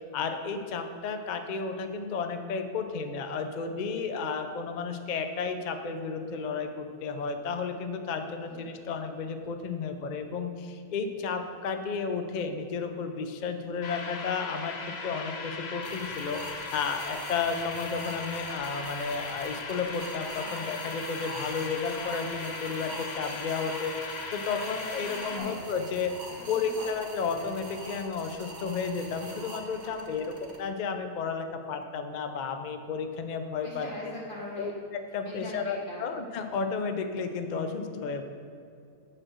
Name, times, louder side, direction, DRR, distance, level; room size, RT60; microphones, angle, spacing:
voice 1, 0.1-26.2 26.5-33.9 34.6-34.7 35.1-38.2, left 5 dB, 70° left, 7 dB, 0.4 m, -33 dB
voice 2, 8.4-8.9 20.4-20.9 24.9-25.6 26.3-26.9 29.8-30.3 33.6-34.7 35.2-36.1, left 1 dB, 35° left, -6 dB, 2.2 m, -43 dB
sound 1, 13.8-25.4, left 4 dB, 55° left, 0.8 m, -38 dB
sound 2, 15.8-30.6, right 1 dB, 35° right, 1.0 m, -43 dB
8.9 x 4.2 x 6.2 m, 2.5 s
omnidirectional pair, 1.6 m